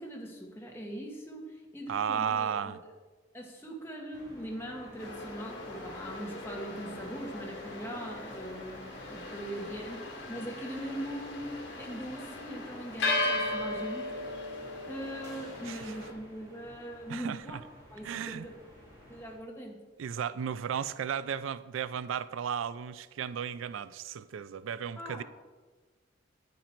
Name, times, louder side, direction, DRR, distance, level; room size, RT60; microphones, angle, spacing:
voice 1, 0.0-2.7 3.3-14.1 14.8-17.6 17.9-18.5 19.1-19.7 25.0-25.2, equal, 15° left, -1 dB, 1.6 m, -41 dB
voice 2, 1.9-2.8 15.7-15.9 17.1-17.6 18.0-18.5 20.0-25.2, right 8 dB, 85° right, 16 dB, 0.4 m, -34 dB
sound 1, 4.1-19.4, equal, 20° right, 3.4 m, -51 dB
sound 2, 5.0-16.1, left 2 dB, 75° left, 1.9 m, -37 dB
9.2 x 9.0 x 4.5 m, 1.3 s
head